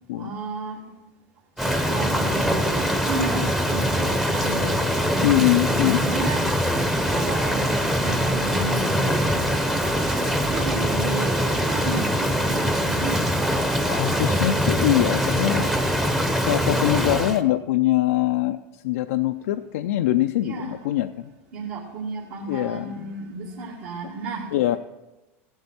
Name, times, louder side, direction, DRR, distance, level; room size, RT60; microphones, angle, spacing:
voice 1, 0.2-0.8 1.8-5.0 5.8-6.5 7.1-10.0 10.4-13.2 20.4-20.9 21.5-24.5, right 3 dB, 65° right, -5 dB, 2.4 m, -33 dB
Rain, 1.6-17.4, equal, 5° right, 0.8 m, -23 dB
voice 2, 5.2-6.0 13.9-15.7 16.4-21.3 22.5-23.2 24.5-24.8, left 14 dB, 80° left, 7 dB, 0.4 m, -23 dB
15.5 x 8.0 x 4.2 m, 1.0 s
supercardioid pair, 135°, 8 cm